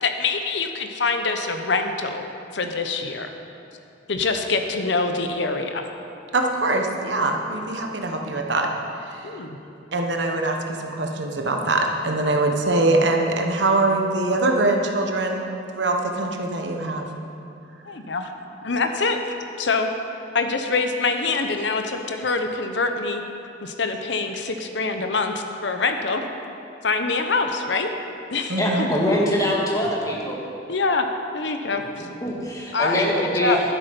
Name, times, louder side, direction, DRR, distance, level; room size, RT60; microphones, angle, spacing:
voice 1, 0.0-2.2 2.5-3.3 4.1-5.9 9.2-9.6 17.9-18.3 18.6-19.9 20.3-23.2 23.6-26.2 26.8-27.9 28.3-28.6 30.7-31.0 31.3-32.1 32.7-33.6, left 4 dB, 65° left, 6 dB, 0.9 m, -25 dB
voice 2, 6.3-8.7 9.1-9.3 9.9-15.5 15.7-17.1 28.5-28.9, right 2 dB, 65° right, 2 dB, 1.2 m, -23 dB
voice 3, 28.5-30.4 31.7-31.8 32.2-33.6, left 1 dB, 20° left, -3 dB, 1.9 m, -23 dB
12.0 x 10.0 x 5.3 m, 2.6 s
head